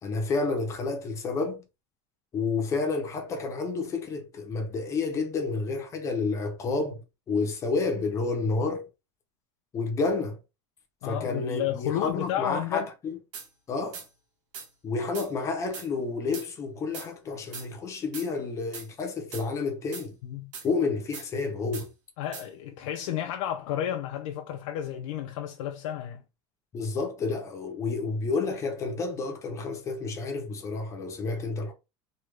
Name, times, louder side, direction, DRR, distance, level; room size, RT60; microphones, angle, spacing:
voice 1, 0.0-1.6 2.3-8.9 9.7-10.4 11.0-13.2 13.7-14.1 14.8-20.2 20.6-21.9 26.7-31.7, left 4 dB, 20° left, 0.6 m, -30 dB
voice 2, 11.0-12.9 20.2-20.5 22.2-26.2, left 11 dB, 80° left, 0.5 m, -32 dB
sound 1, 13.3-13.5 13.9-14.1 14.5-14.7 15.1-15.3 15.7-15.9 16.3-16.5 16.9-17.1 17.5-17.7 18.1-18.3 18.7-18.9 19.3-19.5 19.9-20.1 20.5-20.7 21.1-21.3 21.7-21.9 22.3-22.5, right 5 dB, 85° right, 1.2 m, -40 dB
3.1 x 2.2 x 3.2 m
cardioid pair, 175°, 16 cm